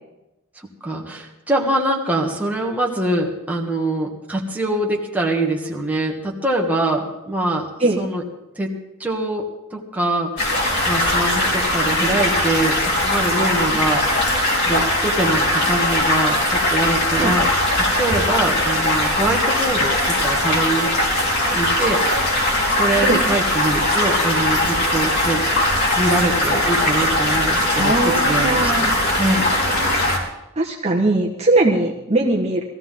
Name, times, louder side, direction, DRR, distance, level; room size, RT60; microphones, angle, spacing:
voice 1, 0.8-7.7 8.0-8.2 8.6-8.7 9.0-14.0 14.6-17.5 18.0-20.9 21.5-22.0 22.7-25.5 26.0-28.9 29.2-29.5, right 1 dB, 5° right, -1 dB, 1.8 m, -23 dB
sound 1, 10.4-30.2, left 1 dB, 50° left, 4.1 m, -20 dB
voice 2, 27.8-28.9 30.6-32.6, right 2 dB, 30° right, -1 dB, 1.4 m, -20 dB
20.0 x 15.0 x 3.8 m, 0.96 s
head